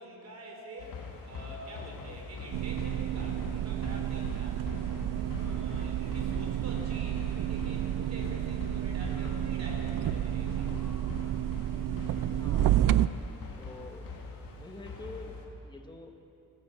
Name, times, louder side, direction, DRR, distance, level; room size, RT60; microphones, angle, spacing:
voice 1, 0.0-4.6 5.4-10.9, right 1 dB, 50° right, 1 dB, 4.5 m, -47 dB
sound 1, 0.8-15.5, left 4 dB, 75° left, 2.9 m, -43 dB
sound 2, 2.5-13.1, right 12 dB, 65° right, 0.5 m, -30 dB
voice 2, 12.0-12.8 13.6-14.1 14.6-16.1, left 2 dB, 15° left, 3 dB, 1.8 m, -47 dB
26.5 x 15.0 x 6.6 m, 2.8 s
wide cardioid pair, 150°, 35 cm